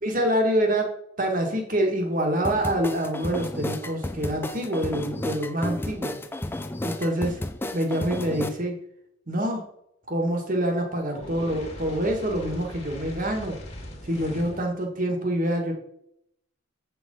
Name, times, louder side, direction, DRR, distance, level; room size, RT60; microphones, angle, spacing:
voice 1, 0.0-6.1 6.8-7.4 7.7-8.8 9.3-9.6 10.1-13.6 14.0-15.7, right 1 dB, 40° right, 2 dB, 1.8 m, -26 dB
sound 1, 2.4-8.5, left 1 dB, 10° left, 0.5 m, -32 dB
Fire, 11.1-14.7, equal, 30° left, 1.9 m, -40 dB
8.0 x 6.2 x 5.5 m, 0.75 s
head